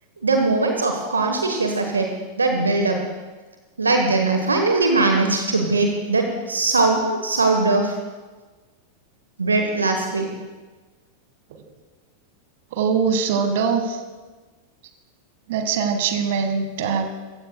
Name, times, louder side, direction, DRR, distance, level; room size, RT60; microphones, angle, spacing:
voice 1, 0.2-2.1 2.4-3.0 3.8-8.0 9.4-10.3, right 3 dB, 75° right, 4 dB, 1.2 m, -20 dB
voice 2, 12.7-14.0 15.5-17.1, right 6 dB, 55° right, 7 dB, 1.6 m, -22 dB
24.5 x 15.0 x 2.3 m, 1.3 s
figure-of-eight pair, 90°, 0 cm